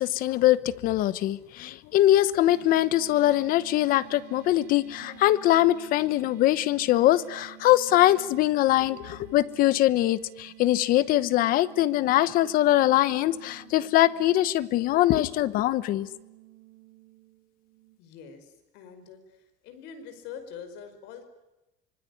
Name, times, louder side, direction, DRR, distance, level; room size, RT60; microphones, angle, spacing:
voice 1, 0.0-16.1, left 14 dB, 50° left, 16 dB, 1.0 m, -22 dB
sound 1, 2.4-18.0, right 18 dB, 45° right, 5.9 m, -51 dB
voice 2, 18.0-19.4 19.6-21.2, left 7 dB, 65° left, 7 dB, 5.3 m, -44 dB
25.5 x 24.0 x 9.8 m, 1.0 s
cardioid pair, 175°, 19 cm